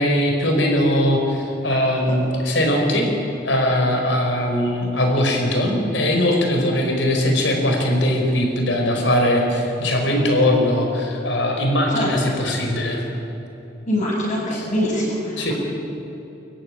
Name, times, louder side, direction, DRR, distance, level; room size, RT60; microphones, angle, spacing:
voice 1, 0.0-3.0 3.4-13.0 14.5-14.7 15.4-15.5, left 1 dB, 75° left, 2 dB, 5.0 m, -20 dB
voice 2, 13.9-15.5, equal, 40° left, -11 dB, 7.5 m, -23 dB
24.5 x 14.5 x 9.9 m, 2.9 s
head